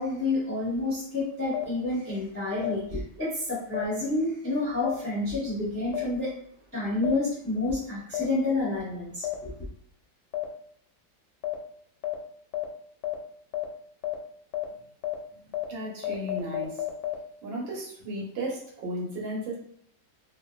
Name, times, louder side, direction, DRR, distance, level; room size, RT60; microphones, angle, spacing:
voice 1, 0.0-6.3 6.7-9.5, left 2 dB, 10° left, -8 dB, 0.6 m, -29 dB
sound 1, 1.5-1.6 2.6-2.7 3.7-3.8 4.8-4.9 5.9-6.0 7.0-7.1 8.1-8.2 9.2-9.3 10.3-10.4 11.4-11.5 12.0-12.1 12.5-12.6 13.0-13.1 13.5-13.6 14.0-14.1 14.5-14.6 15.0-15.1 15.5-15.6 16.0-17.1, left 15 dB, 70° left, 1.1 m, -30 dB
voice 2, 15.7-16.8 17.4-19.6, right 1 dB, 75° right, -4 dB, 1.6 m, -34 dB
3.3 x 2.2 x 2.3 m, 0.67 s
omnidirectional pair, 2.1 m